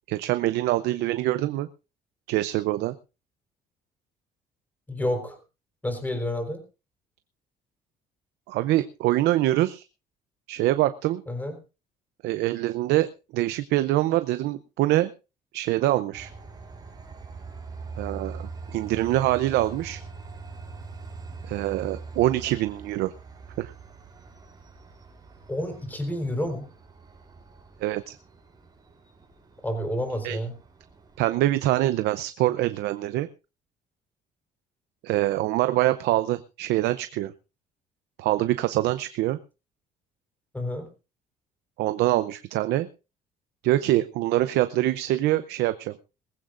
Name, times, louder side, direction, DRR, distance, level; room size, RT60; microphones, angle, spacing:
voice 1, 0.1-1.7 2.3-2.9 8.5-9.9 10.5-11.2 12.2-15.1 15.5-16.3 18.0-20.0 21.4-23.1 23.6-23.7 27.8-28.2 30.2-30.4 31.2-33.3 35.0-37.3 38.2-39.4 41.8-42.9 43.6-46.0, right 15 dB, 80° right, 13 dB, 0.6 m, -24 dB
voice 2, 4.9-5.4 5.8-6.6 11.3-11.6 25.5-26.7 29.6-30.5 40.5-40.9, left 1 dB, 10° left, 6 dB, 4.1 m, -29 dB
Train, 16.1-31.3, right 4 dB, 25° right, 4.9 m, -43 dB
20.0 x 15.0 x 2.5 m, 0.30 s
cardioid pair, 110°, 17 cm